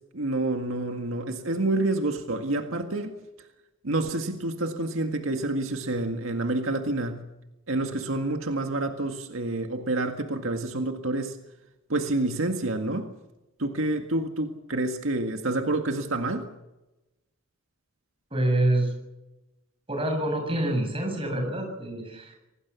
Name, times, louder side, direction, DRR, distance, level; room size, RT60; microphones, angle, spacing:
voice 1, 0.1-3.2 3.8-7.3 7.7-11.4 11.9-13.1 13.6-16.5, right 2 dB, 85° right, 5 dB, 1.9 m, -28 dB
voice 2, 18.3-18.9 19.9-22.4, right 1 dB, 25° right, 3 dB, 7.3 m, -26 dB
26.0 x 18.5 x 7.0 m, 1.0 s
head